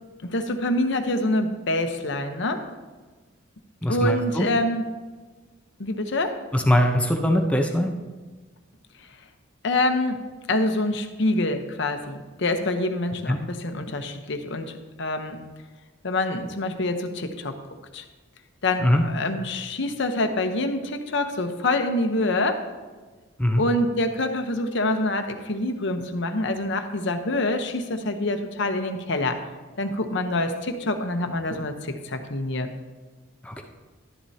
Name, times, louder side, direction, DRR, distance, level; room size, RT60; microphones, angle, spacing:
voice 1, 0.2-2.6 3.9-4.8 5.8-6.4 9.6-10.2 10.5-14.7 15.0-15.4 16.0-17.6 17.9-18.0 18.6-22.6 23.6-29.4 29.8-32.7, left 2 dB, 65° left, 6 dB, 0.9 m, -26 dB
voice 2, 3.8-4.5 6.5-7.9 13.3-13.4 18.8-19.0 23.4-23.6 33.4-33.6, left 1 dB, 5° left, 3 dB, 0.7 m, -21 dB
12.0 x 10.5 x 2.8 m, 1.3 s
head